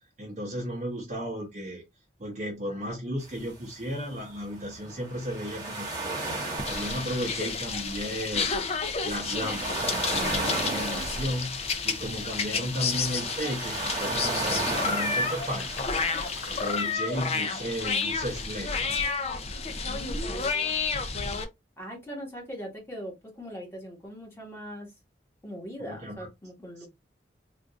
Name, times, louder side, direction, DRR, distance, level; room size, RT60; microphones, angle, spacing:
voice 1, 0.2-1.8 2.2-8.5 9.0-15.8 16.5-19.1 25.8-26.3 26.8-26.9, equal, 40° right, 0.8 m, -34 dB
sound 1, 3.2-16.9, right 2 dB, 20° right, 1.1 m, -35 dB
sound 2, 6.6-21.4, left 5 dB, 35° left, 0.5 m, -30 dB
sound 3, 14.0-18.5, left 3 dB, 85° left, 1.1 m, -48 dB
voice 2, 19.9-20.7 21.8-24.9 25.4-26.9, equal, 15° left, 1.4 m, -40 dB
3.7 x 2.5 x 2.3 m
head